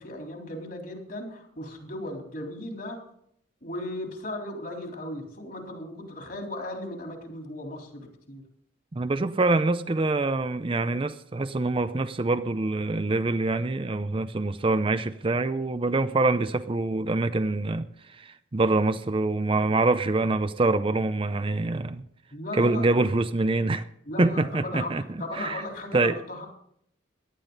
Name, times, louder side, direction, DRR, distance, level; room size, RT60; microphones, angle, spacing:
voice 1, 0.0-3.0 3.6-8.4 22.3-22.9 24.1-26.5, left 1 dB, 50° left, 3.7 m, -36 dB
voice 2, 8.9-22.0 22.5-23.9 24.2-25.6 25.9-26.2, right 2 dB, 30° right, 0.5 m, -25 dB
18.0 x 11.5 x 4.0 m
head